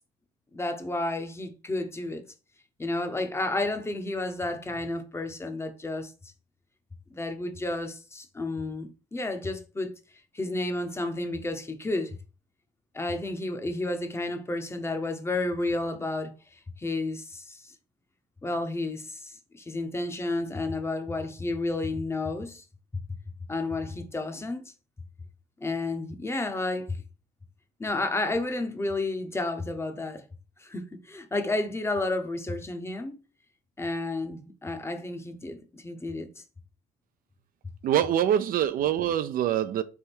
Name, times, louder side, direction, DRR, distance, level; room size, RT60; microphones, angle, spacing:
voice 1, 0.5-2.2 2.8-6.1 7.1-10.0 10.3-12.2 12.9-17.7 18.4-22.6 23.5-24.7 25.6-27.0 27.8-30.3 30.6-33.2 33.8-36.4, left 2 dB, 15° left, 0.7 m, -31 dB
voice 2, 37.8-39.8, right 10 dB, 60° right, 0.4 m, -24 dB
3.4 x 3.3 x 4.4 m
cardioid pair, 110°, 17 cm